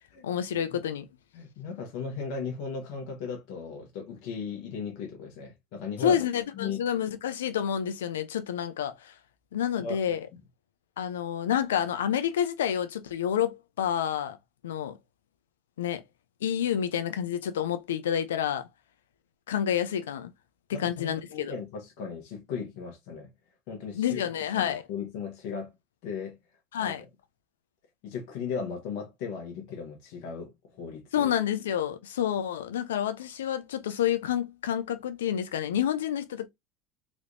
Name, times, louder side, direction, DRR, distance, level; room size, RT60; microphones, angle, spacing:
voice 1, 0.2-1.1 6.0-9.1 9.5-10.3 11.0-14.4 14.6-15.0 15.8-16.0 16.4-18.6 19.5-20.3 20.7-21.5 23.9-24.9 26.7-27.0 31.1-36.5, left 9 dB, 90° left, 0.6 m, -29 dB
voice 2, 1.3-6.2 6.5-6.8 9.8-10.2 20.7-23.3 23.7-24.2 24.5-25.7 26.0-26.4 26.8-27.0 28.0-31.3, left 5 dB, 70° left, 1.2 m, -37 dB
3.3 x 3.1 x 2.6 m
hypercardioid pair, 90°, 0 cm